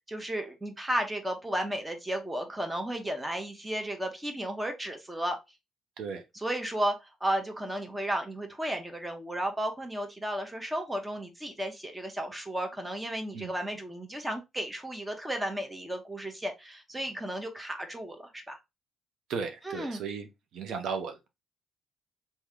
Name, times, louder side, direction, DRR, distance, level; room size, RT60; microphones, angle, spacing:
voice 1, 0.1-5.4 6.3-18.6 19.6-20.0, right 1 dB, 10° right, 1.0 m, -33 dB
voice 2, 19.3-20.3 20.5-21.2, right 5 dB, 75° right, 0.8 m, -35 dB
3.1 x 2.8 x 3.7 m
cardioid pair, 90°, 0 cm